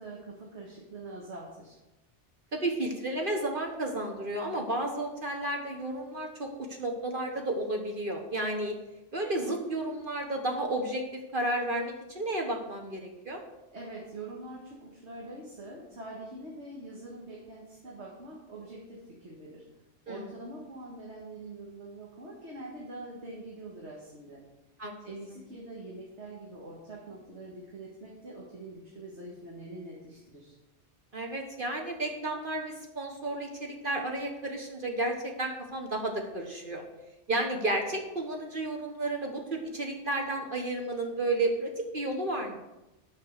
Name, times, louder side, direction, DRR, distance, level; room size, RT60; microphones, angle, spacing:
voice 1, 0.0-1.8 13.7-19.6 20.1-24.4 25.0-30.6, right 2 dB, 65° right, -3 dB, 2.0 m, -44 dB
voice 2, 2.5-8.7 9.1-13.4 20.1-20.3 24.8-24.9 31.1-36.8 37.3-42.6, right 1 dB, 50° right, 2 dB, 1.3 m, -32 dB
10.5 x 5.8 x 6.4 m, 0.99 s
omnidirectional pair, 1.2 m